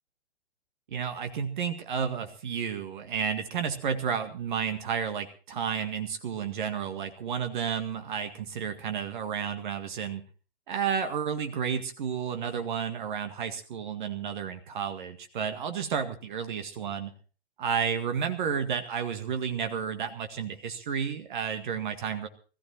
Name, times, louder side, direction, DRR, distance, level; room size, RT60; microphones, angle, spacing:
voice 1, 0.9-10.2 10.7-17.1 17.6-22.3, right 7 dB, 50° right, 7 dB, 1.9 m, -31 dB
19.0 x 15.0 x 4.4 m, 0.37 s
figure-of-eight pair, 115°, 32 cm